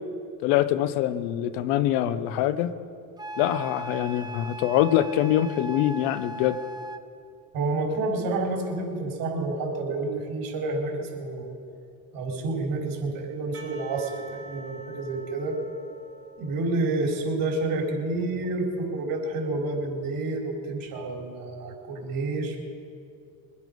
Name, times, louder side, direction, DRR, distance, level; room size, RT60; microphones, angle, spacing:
voice 1, 0.4-2.7 3.4-6.6, left 12 dB, 85° left, 14 dB, 0.9 m, -24 dB
Wind instrument woodwind instrument, 3.2-7.1, equal, 10° right, 0.6 m, -38 dB
voice 2, 7.5-11.5 12.1-15.6 16.4-22.6, right 2 dB, 60° right, 0 dB, 4.1 m, -29 dB
Percussion / Church bell, 13.5-17.9, right 2 dB, 35° right, 3.8 m, -47 dB
23.0 x 9.7 x 5.3 m, 2.3 s
supercardioid pair, 105°, 39 cm